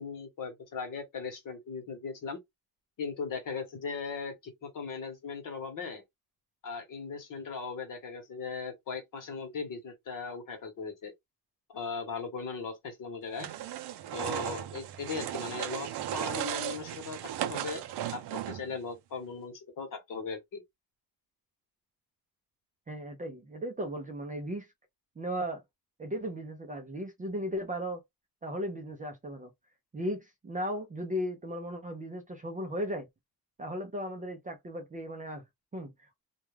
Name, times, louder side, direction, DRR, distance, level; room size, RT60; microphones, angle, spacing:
voice 1, 0.0-2.4 3.0-6.0 6.6-11.1 11.7-13.5 14.1-17.8 18.1-20.6, left 5 dB, 55° left, 1.0 m, -38 dB
sound 1, 13.4-18.8, right 11 dB, 90° right, 0.5 m, -36 dB
voice 2, 22.9-24.7 25.2-25.6 26.0-28.0 28.4-29.5 29.9-33.1 33.6-35.4 35.7-36.1, equal, 20° right, 0.4 m, -36 dB
2.3 x 2.2 x 3.1 m
wide cardioid pair, 160°, 39 cm